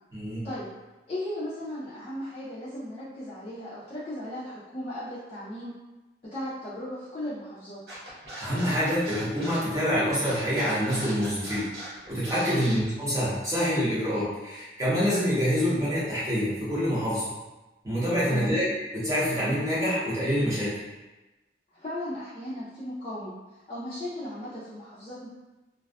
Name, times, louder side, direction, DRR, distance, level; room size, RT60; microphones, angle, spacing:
voice 1, 0.1-0.5 8.4-11.7 12.1-17.2 17.8-18.6 18.9-20.8, equal, 20° right, -10 dB, 0.7 m, -26 dB
voice 2, 1.1-5.7 6.2-7.8 12.6-12.9 18.3-18.6 21.7-23.3 23.7-25.3, left 1 dB, 35° left, -11 dB, 0.5 m, -36 dB
Scratching (performance technique), 7.9-12.7, right 1 dB, 65° right, 1.0 m, -40 dB
2.5 x 2.3 x 2.3 m, 1.1 s
head